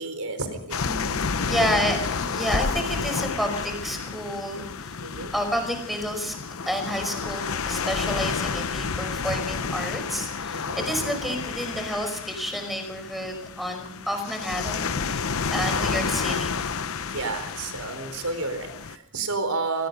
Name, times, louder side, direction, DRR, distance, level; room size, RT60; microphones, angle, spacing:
voice 1, 0.0-0.8 1.6-1.7 5.0-5.3 10.5-10.8 17.1-19.9, right 3 dB, 85° right, 9 dB, 4.3 m, -31 dB
sound 1, 0.7-18.9, left 5 dB, 70° left, 0.9 m, -30 dB
voice 2, 0.9-5.0 5.3-6.4 6.7-16.6, equal, ahead, 5 dB, 5.3 m, -30 dB
26.0 x 19.0 x 5.4 m, 0.76 s
head